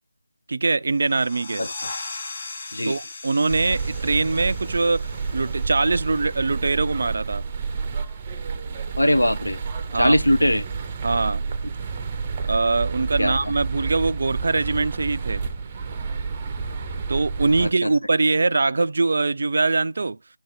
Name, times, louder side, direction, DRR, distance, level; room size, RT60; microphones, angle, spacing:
voice 1, 0.5-1.6 2.8-7.4 9.9-10.2 11.0-11.5 12.5-15.5 17.1-20.2, right 3 dB, 50° right, 0.5 m, -23 dB
sound 1, 0.9-6.3, left 3 dB, 40° left, 1.4 m, -38 dB
voice 2, 1.6-1.9 2.7-3.0 9.0-9.6 9.9-10.7 13.2-13.5 17.6-17.9, equal, 80° left, 1.0 m, -21 dB
sound 2, 3.5-17.7, right 5 dB, 25° right, 0.8 m, -30 dB
8.3 x 3.0 x 4.0 m
figure-of-eight pair, 155°, 0 cm